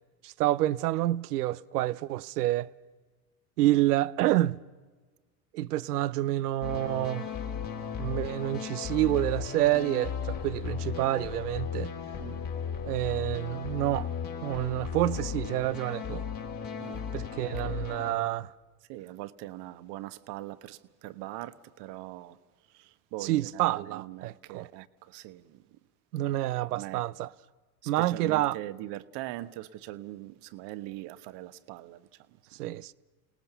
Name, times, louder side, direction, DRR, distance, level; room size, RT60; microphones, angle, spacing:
voice 1, 0.2-2.7 3.6-4.6 5.5-7.3 8.0-11.9 12.9-14.1 14.4-16.2 17.1-18.5 23.2-24.7 26.1-27.3 27.9-28.6 32.6-32.9, right 15 dB, 85° right, 0.7 m, -28 dB
sound 1, 6.6-18.1, left 7 dB, 50° left, 3.1 m, -36 dB
voice 2, 18.9-22.4 22.7-25.8 26.7-27.0 27.8-32.4, right 16 dB, 65° right, 1.3 m, -42 dB
28.5 x 18.5 x 6.9 m
hypercardioid pair, 75°, 45 cm